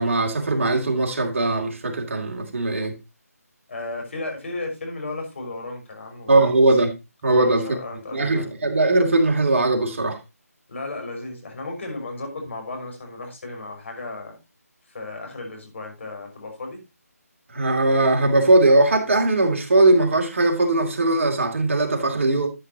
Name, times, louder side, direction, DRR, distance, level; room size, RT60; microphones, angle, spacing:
voice 1, 0.0-3.0 6.3-6.9 7.2-7.7 8.1-10.2 17.5-22.5, right 2 dB, 50° right, 2.7 m, -19 dB
voice 2, 3.7-6.5 7.2-8.6 10.7-14.4 14.9-16.8, left 2 dB, 50° left, 5.7 m, -34 dB
13.0 x 8.2 x 2.9 m
figure-of-eight pair, 155°, 9 cm